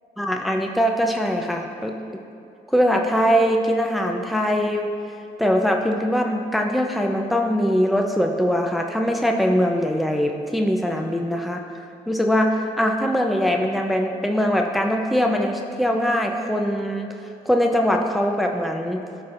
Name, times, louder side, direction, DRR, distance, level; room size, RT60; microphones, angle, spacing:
voice 1, 0.2-2.2 2.7-4.9 5.4-11.6 12.1-17.1 17.4-19.0, equal, ahead, 2 dB, 0.7 m, -22 dB
15.0 x 5.5 x 2.6 m, 2.5 s
supercardioid pair, 55°, 18 cm